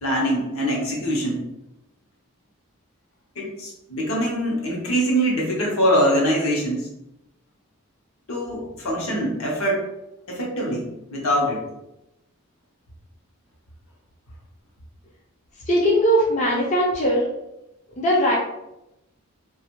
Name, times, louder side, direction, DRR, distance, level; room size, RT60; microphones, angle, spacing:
voice 1, 0.0-1.5 3.4-6.9 8.3-9.9 10.3-11.6, equal, 75° left, -3 dB, 0.8 m, -23 dB
voice 2, 15.7-17.3 18.0-18.3, equal, 35° left, -4 dB, 0.4 m, -19 dB
2.4 x 2.3 x 2.9 m, 0.90 s
head